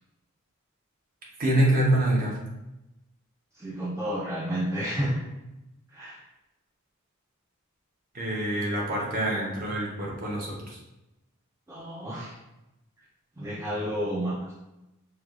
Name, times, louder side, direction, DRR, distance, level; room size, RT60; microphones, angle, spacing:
voice 1, 1.4-2.4 8.1-10.8 14.1-14.2, right 1 dB, 40° right, -3 dB, 0.8 m, -26 dB
voice 2, 3.6-5.2 5.9-6.2 11.7-12.3 13.4-14.3, equal, 15° right, -6 dB, 0.4 m, -30 dB
4.5 x 2.3 x 2.4 m, 0.96 s
head